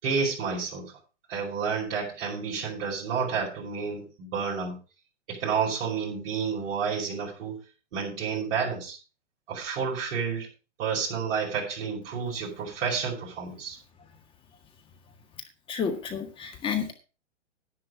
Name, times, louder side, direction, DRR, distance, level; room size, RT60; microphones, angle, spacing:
voice 1, 0.0-0.9 1.3-4.8 5.3-7.6 7.9-9.0 9.5-10.5 10.8-13.8, right 6 dB, 50° right, -5 dB, 6.2 m, -30 dB
voice 2, 15.7-16.9, left 6 dB, 15° left, 6 dB, 1.7 m, -30 dB
10.5 x 10.5 x 4.8 m, 0.33 s
hypercardioid pair, 150°, 36 cm